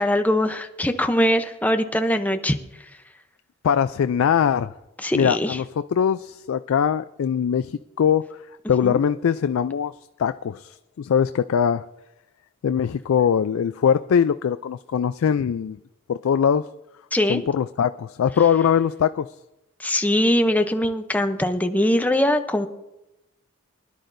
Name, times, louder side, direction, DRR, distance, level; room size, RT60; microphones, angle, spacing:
voice 1, 0.0-2.6 5.0-5.6 8.8-9.0 17.1-17.4 19.8-22.7, left 1 dB, 5° left, 7 dB, 0.6 m, -22 dB
voice 2, 3.6-4.7 5.1-8.4 8.7-9.9 10.2-11.8 12.6-15.8 16.1-16.7 17.3-19.3, left 7 dB, 70° left, 12 dB, 0.3 m, -22 dB
24.0 x 11.0 x 2.6 m, 0.92 s
head